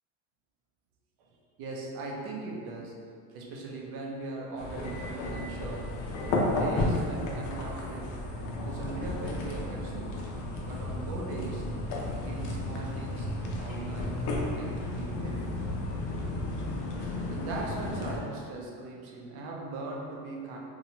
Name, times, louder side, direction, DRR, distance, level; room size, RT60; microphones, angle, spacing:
voice 1, 1.6-3.0 3.3-6.0 6.4-8.2 8.7-10.3 10.6-11.7 12.2-13.3 13.6-14.2 14.5-15.6 17.3-20.6, right 3 dB, 60° right, -1 dB, 0.7 m, -39 dB
sound 1, 4.6-18.2, left 2 dB, 45° left, 0.6 m, -33 dB
2.7 x 2.3 x 2.9 m, 2.2 s
supercardioid pair, 110°, 42 cm